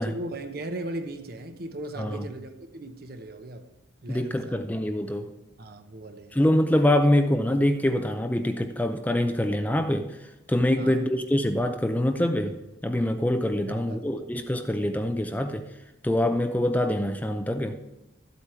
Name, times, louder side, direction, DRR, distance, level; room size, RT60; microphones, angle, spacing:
voice 1, 0.0-3.7 4.0-4.6 5.6-6.4 10.8-11.1 13.6-14.3, right 1 dB, 50° right, 0.9 m, -38 dB
voice 2, 4.1-5.3 6.3-15.7 16.0-17.8, left 1 dB, 10° left, 0.5 m, -25 dB
13.5 x 8.1 x 4.4 m
head